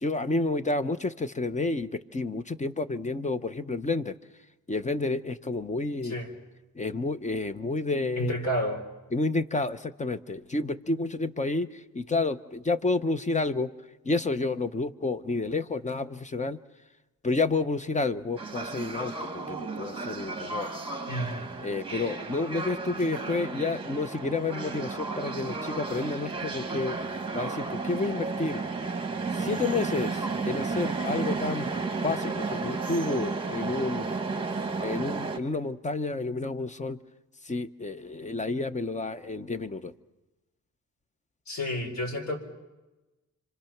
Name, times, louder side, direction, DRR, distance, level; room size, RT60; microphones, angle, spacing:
voice 1, 0.0-4.1 4.7-6.1 6.7-8.4 9.1-13.7 14.0-16.6 17.2-20.7 21.6-27.0 27.3-28.6 29.3-31.7 32.0-34.1 34.8-37.0 37.4-39.9, left 3 dB, 20° left, 12 dB, 0.8 m, -30 dB
voice 2, 8.2-8.8 21.1-21.5 41.5-42.4, equal, 55° left, 2 dB, 4.6 m, -30 dB
sound 1, 18.4-35.4, right 4 dB, 15° right, 1.6 m, -33 dB
28.5 x 25.5 x 5.9 m, 1.1 s
cardioid pair, 110°, 32 cm